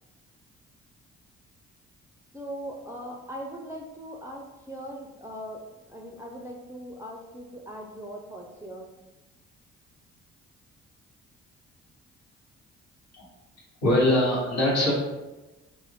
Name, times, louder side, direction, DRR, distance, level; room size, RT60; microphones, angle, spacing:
voice 1, 2.3-8.9, equal, 10° right, -1 dB, 0.4 m, -40 dB
voice 2, 13.8-14.9, left 1 dB, 55° left, -4 dB, 1.1 m, -22 dB
2.4 x 2.1 x 3.3 m, 1.1 s
hypercardioid pair, 45°, 32 cm